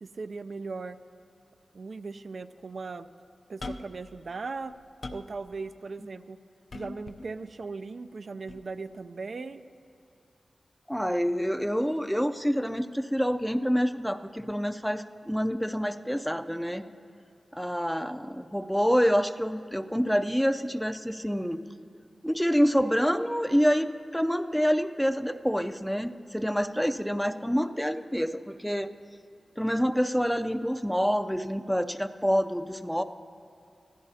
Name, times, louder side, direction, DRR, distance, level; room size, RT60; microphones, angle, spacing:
voice 1, 0.0-1.0 1.7-3.1 3.5-4.7 5.1-6.4 6.7-9.6, right 4 dB, 60° right, 9 dB, 0.4 m, -38 dB
sound 1, 3.6-4.0 4.6-5.4 6.7-7.3 8.5-8.6, left 2 dB, 55° left, 0.6 m, -40 dB
voice 2, 10.9-16.8 17.5-21.6 22.2-28.9 29.6-33.0, equal, ahead, 9 dB, 0.5 m, -27 dB
25.0 x 16.0 x 2.8 m, 2.7 s
wide cardioid pair, 85°, 0 cm